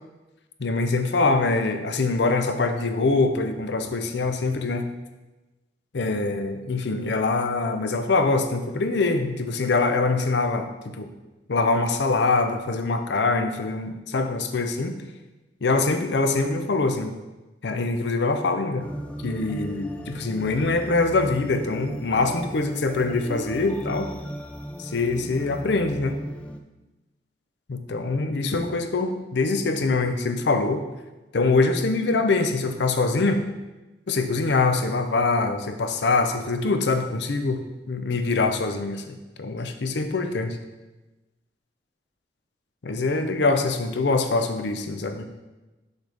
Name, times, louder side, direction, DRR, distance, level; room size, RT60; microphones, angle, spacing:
voice 1, 0.6-4.9 5.9-11.1 11.5-15.0 15.6-17.1 17.6-18.9 19.2-24.1 24.8-26.2 27.7-30.8 31.3-33.4 34.1-40.6 42.8-45.2, left 3 dB, 70° left, 7 dB, 0.6 m, -24 dB
sound 1, 18.8-26.6, equal, 5° left, 0.4 m, -36 dB
6.4 x 5.2 x 3.4 m, 1.1 s
head